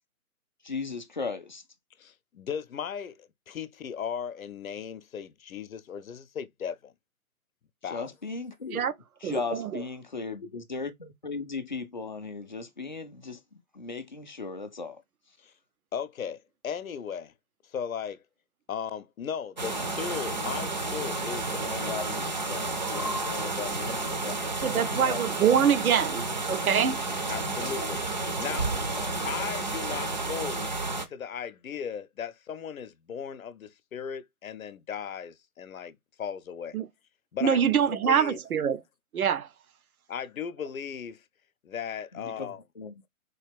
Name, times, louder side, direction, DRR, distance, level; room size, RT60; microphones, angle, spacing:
voice 1, 0.6-1.6 7.9-8.9 9.2-13.4 13.7-15.0 21.9-22.0 23.0-23.2 24.2-24.3 24.8-25.2 25.9-26.0 28.9-29.1 42.1-42.9, left 4 dB, 35° left, 0.4 m, -36 dB
voice 2, 2.0-6.9 7.8-8.1 15.4-15.5 15.9-17.3 17.6-18.2 18.7-24.4 27.3-28.8 29.2-30.7 31.1-36.8 37.3-38.4 40.1-41.2 41.6-42.6, left 7 dB, 70° left, 0.7 m, -37 dB
voice 3, 9.2-9.8 24.6-27.0 36.7-36.9 37.4-38.8 39.1-39.5, right 8 dB, 75° right, 0.6 m, -25 dB
sound 1, 19.6-31.1, right 2 dB, 35° right, 0.4 m, -31 dB
3.9 x 2.4 x 3.4 m
figure-of-eight pair, 145°, 44 cm